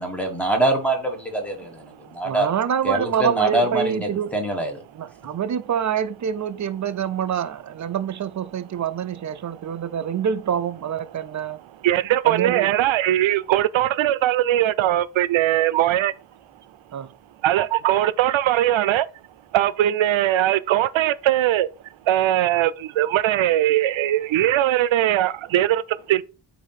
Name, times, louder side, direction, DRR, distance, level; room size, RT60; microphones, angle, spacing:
voice 1, 0.0-1.8 2.1-2.5 2.8-4.8, right 2 dB, 5° left, 1.3 m, -24 dB
voice 2, 2.2-4.3 4.9-11.6 12.2-12.7 16.9-17.1, right 8 dB, 40° right, 0.5 m, -26 dB
voice 3, 11.7-16.1 17.4-19.1 19.5-21.7 22.1-26.2, right 13 dB, 85° right, 0.6 m, -20 dB
8.2 x 2.8 x 5.7 m
wide cardioid pair, 175°, 45 cm